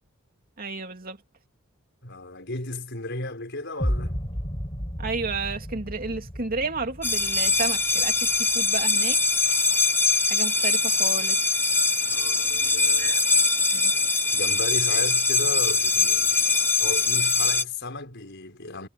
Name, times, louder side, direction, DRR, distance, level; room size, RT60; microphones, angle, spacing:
voice 1, 0.6-1.2 5.0-9.2 10.3-11.4 13.0-13.2 13.7-13.9, right 3 dB, 45° right, 2.8 m, -32 dB
voice 2, 2.0-4.3 12.1-13.3 14.3-16.5 16.8-18.9, left 2 dB, 60° left, 5.9 m, -35 dB
sound 1, 3.8-9.8, equal, 25° left, 6.2 m, -34 dB
sound 2, 7.0-17.6, left 4 dB, 10° left, 1.0 m, -22 dB
head